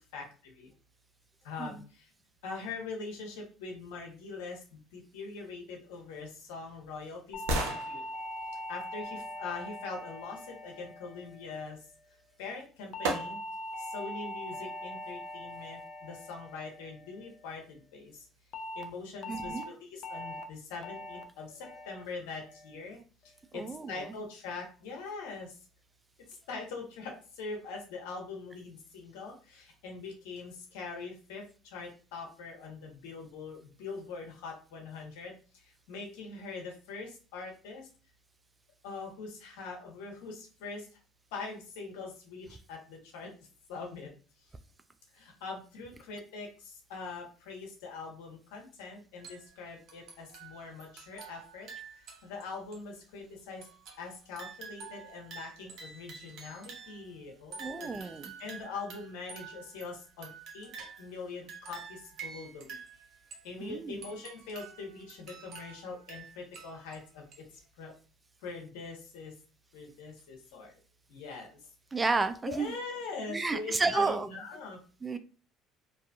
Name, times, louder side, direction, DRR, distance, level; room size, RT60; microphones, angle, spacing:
voice 1, 0.1-0.7 1.4-2.1 2.4-8.0 8.7-11.8 12.4-13.4 13.8-18.2 18.7-23.0 23.5-25.6 26.5-35.3 35.9-37.9 38.8-40.9 41.3-43.3 43.7-44.1 45.1-51.7 52.2-53.7 54.0-58.1 58.4-60.7 61.0-62.8 63.4-67.2 67.8-67.9 68.4-69.3 69.7-70.7 71.1-71.5 72.5-74.8, left 4 dB, 80° left, 1 dB, 0.8 m, -43 dB
sound 1, 5.9-10.0 12.1-12.2 13.0-13.7 14.2-14.3, right 1 dB, 85° right, 0.7 m, -38 dB
sound 2, 7.3-11.8 12.9-17.4 18.5-18.8 19.2-19.6 20.0-20.4 20.8-21.2 21.6-22.0 22.4-22.8, left 1 dB, 55° left, 0.5 m, -42 dB
voice 2, 19.3-19.6 23.5-23.9 57.6-58.3 63.6-64.0 71.9-72.7 73.3-74.3 75.0-75.2, right 3 dB, 20° right, 10 dB, 0.3 m, -31 dB
sound 3, 49.2-49.6 49.9-52.4 52.7-52.8 53.6-57.1 57.5-61.2 61.5-63.5 64.0-67.0 67.3-67.4, right 6 dB, 60° right, 0.9 m, -48 dB
2.6 x 2.4 x 2.3 m, 0.37 s
supercardioid pair, 75°, 0 cm